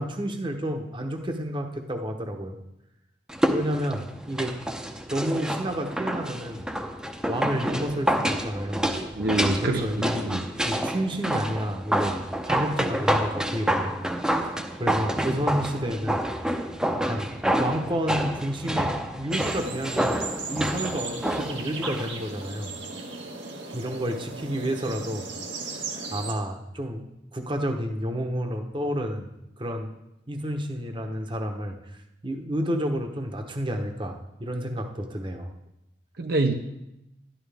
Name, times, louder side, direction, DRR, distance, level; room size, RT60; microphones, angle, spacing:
voice 1, 0.0-2.6 3.5-4.5 5.1-6.6 7.2-8.9 9.6-10.3 10.6-14.0 14.4-14.5 14.8-16.2 17.0-20.2 20.5-22.7 23.7-25.3 25.6-29.3 29.6-29.9 30.3-31.8 32.2-35.5, equal, 25° right, 4 dB, 1.0 m, -30 dB
sound 1, 3.3-22.1 22.4-22.5, equal, 5° right, 0.7 m, -28 dB
voice 2, 9.2-10.5 36.2-36.5, right 2 dB, 60° right, 4 dB, 0.7 m, -25 dB
sound 2, 19.3-26.3, right 3 dB, 80° right, 1.6 m, -36 dB
12.0 x 11.5 x 3.5 m, 0.89 s
head